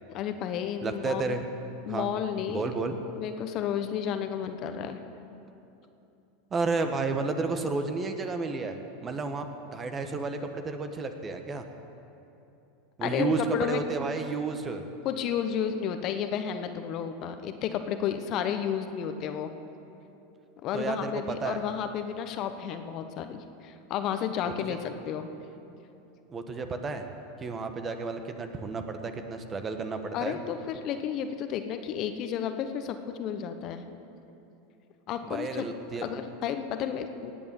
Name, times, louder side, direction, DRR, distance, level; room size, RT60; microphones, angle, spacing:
voice 1, 0.1-1.4 1.9-2.7 3.2-5.0 13.0-13.8 15.0-19.5 20.6-25.3 30.1-33.8 35.1-35.7 36.0-37.3, left 8 dB, 50° left, 8 dB, 1.0 m, -32 dB
voice 2, 0.8-1.5 1.9-2.1 2.5-2.9 6.5-11.7 13.0-14.8 20.7-21.6 24.4-24.8 26.3-27.1 27.4-30.4 35.2-36.1, right 4 dB, 25° right, 7 dB, 1.3 m, -32 dB
18.5 x 8.4 x 7.1 m, 2.8 s
hypercardioid pair, 95°, 0 cm